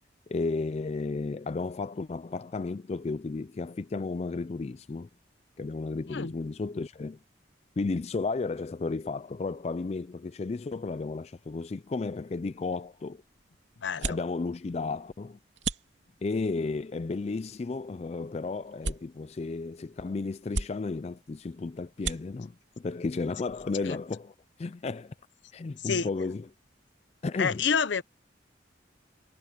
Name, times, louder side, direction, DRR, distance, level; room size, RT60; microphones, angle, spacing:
voice 1, 0.3-5.1 5.6-7.2 7.8-13.2 14.0-15.4 16.2-25.1 25.5-26.5 27.2-27.6, left 3 dB, 35° left, 0.3 m, -33 dB
sound 1, 12.6-24.1, right 4 dB, 75° right, 2.7 m, -41 dB
voice 2, 13.8-14.2 23.9-24.0 25.8-26.1 27.4-28.0, left 6 dB, 75° left, 0.8 m, -28 dB
head